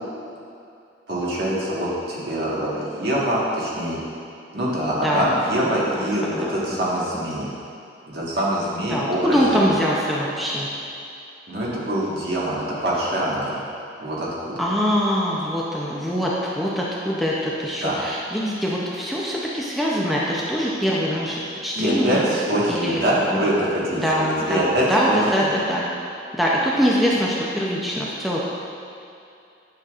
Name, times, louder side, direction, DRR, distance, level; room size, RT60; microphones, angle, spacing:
voice 1, 1.1-4.0 4.5-7.5 8.1-9.6 11.5-13.6 14.0-14.5 17.8-18.0 21.7-25.5, right 1 dB, 60° right, -6 dB, 1.4 m, -24 dB
voice 2, 4.9-5.3 5.6-6.5 7.4-7.5 8.9-10.7 14.6-22.2 22.7-23.0 23.3-23.5 23.9-25.9 26.3-28.4, equal, ahead, -6 dB, 0.5 m, -23 dB
9.1 x 5.7 x 2.4 m, 2.6 s
head